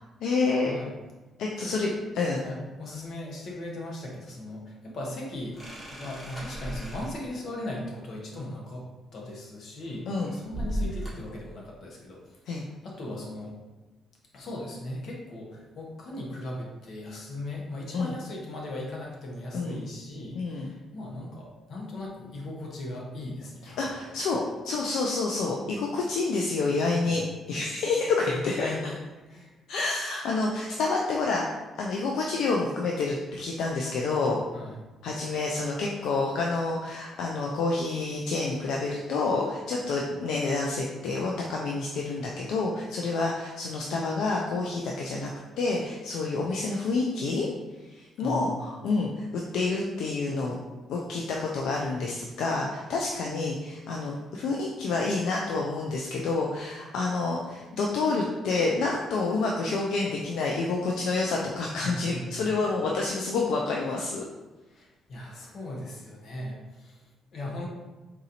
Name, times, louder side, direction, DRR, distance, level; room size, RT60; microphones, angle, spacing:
voice 1, 0.2-0.7 1.4-1.9 2.2-2.4 10.1-10.3 12.5-12.6 17.9-18.1 19.5-19.8 20.3-20.7 23.8-27.2 27.5-28.7 29.7-31.4 31.8-34.4 35.0-45.3 45.6-47.5 47.9-50.6 50.9-64.2, left 3 dB, 80° left, -1 dB, 0.4 m, -28 dB
voice 2, 1.6-1.9 2.4-5.6 5.9-8.9 9.1-12.4 12.8-13.5 14.3-24.1 27.0-27.3 28.2-29.0 29.3-29.5 34.5-34.8 48.2-48.6 61.8-62.4 64.7-67.0 67.3-67.7, left 1 dB, 60° left, -2 dB, 1.0 m, -38 dB
sound 1, 5.5-7.3 9.8-11.4, equal, 15° left, 1.3 m, -36 dB
3.9 x 2.6 x 2.7 m, 1.2 s
cardioid pair, 90°, 0 cm